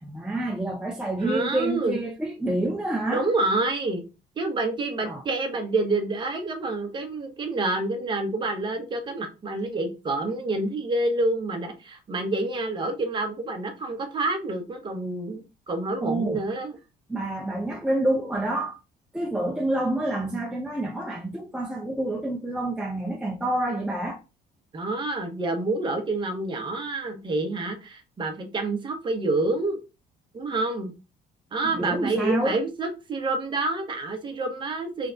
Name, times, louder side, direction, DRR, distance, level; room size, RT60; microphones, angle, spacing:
voice 1, 0.0-3.3 5.0-5.2 16.0-16.4 17.1-18.8 19.1-24.2 31.7-32.6, right 1 dB, 5° right, 0.5 m, -28 dB
voice 2, 1.2-2.0 3.1-4.0 4.4-16.8 24.7-29.8 30.3-30.9 31.5-35.1, right 2 dB, 30° right, 1.0 m, -28 dB
3.7 x 3.4 x 3.9 m
cardioid pair, 150°, 17 cm